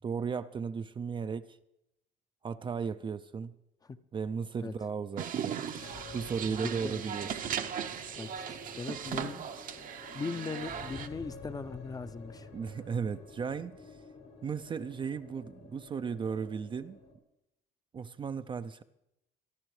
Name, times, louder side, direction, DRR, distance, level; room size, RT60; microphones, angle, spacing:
voice 1, 0.0-1.6 2.4-3.6 4.1-7.3 9.4-9.5 12.5-13.8 14.4-17.0 17.9-18.8, right 6 dB, 30° right, 10 dB, 0.4 m, -36 dB
sound 1, 5.2-11.1, right 8 dB, 55° right, 0.7 m, -38 dB
sound 2, 5.6-17.1, left 3 dB, 70° left, 2.0 m, -50 dB
voice 2, 6.5-7.0 8.2-9.7 10.1-12.5, left 4 dB, 20° left, 11 dB, 0.6 m, -39 dB
24.0 x 11.5 x 3.2 m, 0.86 s
cardioid pair, 110°, 17 cm